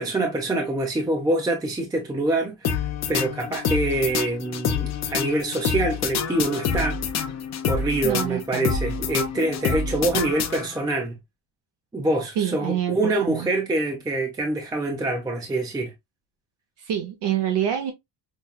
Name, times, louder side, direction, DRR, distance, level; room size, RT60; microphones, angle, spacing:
voice 1, 0.0-2.8 3.1-7.0 7.7-11.2 11.9-15.9, right 2 dB, 10° right, 0.5 m, -25 dB
sound 1, 2.6-11.0, left 6 dB, 40° left, 0.6 m, -27 dB
voice 2, 8.0-8.7 12.4-13.5 16.8-17.9, right 10 dB, 70° right, 0.8 m, -26 dB
5.4 x 2.2 x 2.2 m
cardioid pair, 175°, 44 cm